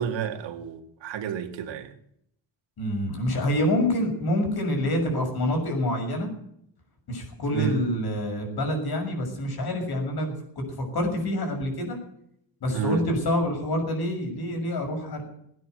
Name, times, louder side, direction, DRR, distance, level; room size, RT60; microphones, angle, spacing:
voice 1, 0.0-2.0 7.5-7.8 12.7-13.1, right 8 dB, 80° right, 2.1 m, -30 dB
voice 2, 2.8-6.3 7.1-10.3 10.7-12.0 12.6-15.2, left 1 dB, 60° left, 6.6 m, -27 dB
18.5 x 9.6 x 7.9 m
cardioid pair, 130°, 43 cm